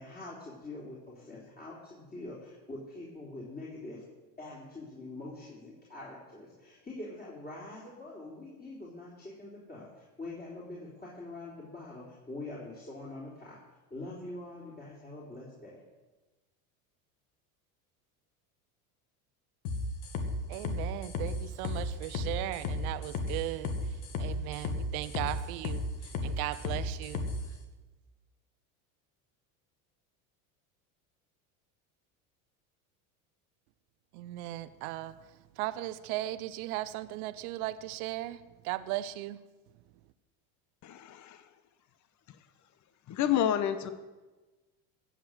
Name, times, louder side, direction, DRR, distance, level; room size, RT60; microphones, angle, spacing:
voice 1, 0.0-4.0 4.4-13.6 13.9-15.8, left 2 dB, 20° left, 3.8 m, -44 dB
sound 1, 19.6-27.4, left 2 dB, 75° left, 2.0 m, -34 dB
voice 2, 20.5-27.3 34.1-39.4, right 15 dB, 75° right, 0.8 m, -37 dB
voice 3, 40.8-41.4 43.1-43.9, left 10 dB, 40° left, 1.0 m, -29 dB
16.5 x 6.8 x 7.7 m
supercardioid pair, 105°, 44 cm